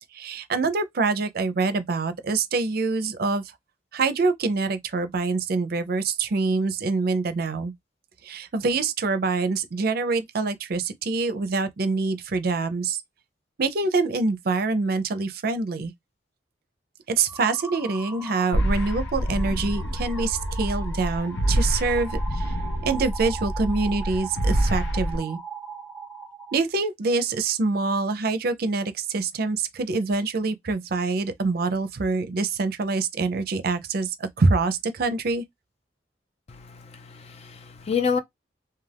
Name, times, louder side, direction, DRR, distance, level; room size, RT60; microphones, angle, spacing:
voice 1, 0.1-3.4 3.9-7.7 8.2-13.0 13.6-15.9 17.1-22.5 22.8-25.4 26.5-35.4, right 3 dB, 55° right, 0.5 m, -25 dB
sound 1, 17.3-26.6, right 4 dB, ahead, 0.7 m, -39 dB
sound 2, 18.5-25.2, equal, 90° left, 0.6 m, -27 dB
voice 2, 36.5-38.2, left 6 dB, 35° left, 0.4 m, -28 dB
2.4 x 2.2 x 3.3 m
head